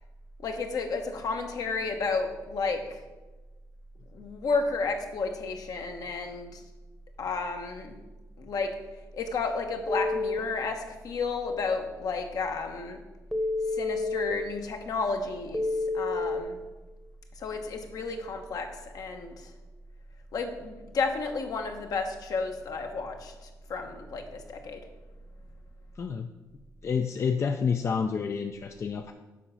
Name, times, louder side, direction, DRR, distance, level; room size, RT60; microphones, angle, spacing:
voice 1, 0.4-3.0 4.1-6.6 7.2-8.0 8.4-8.8 9.1-13.0 13.7-15.7 15.9-16.6 17.4-19.5 20.3-24.8, left 4 dB, 65° left, 4 dB, 1.1 m, -32 dB
Telephone, 9.9-10.4 13.3-14.3 15.5-16.4, left 2 dB, 5° right, 0.9 m, -29 dB
voice 2, 26.0-26.3 26.8-29.1, left 6 dB, 45° left, 5 dB, 0.5 m, -29 dB
7.4 x 4.9 x 5.6 m, 1.2 s
cardioid pair, 80°, 7 cm